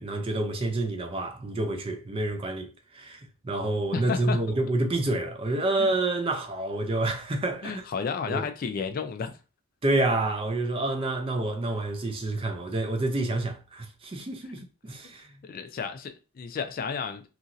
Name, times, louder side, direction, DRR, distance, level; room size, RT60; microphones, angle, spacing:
voice 1, 0.0-7.8 8.3-8.4 9.8-15.3, right 2 dB, 25° right, 0.4 m, -28 dB
voice 2, 3.9-4.4 5.8-5.9 7.6-9.3 15.4-17.2, left 5 dB, 45° left, 0.3 m, -32 dB
2.9 x 2.6 x 2.5 m
head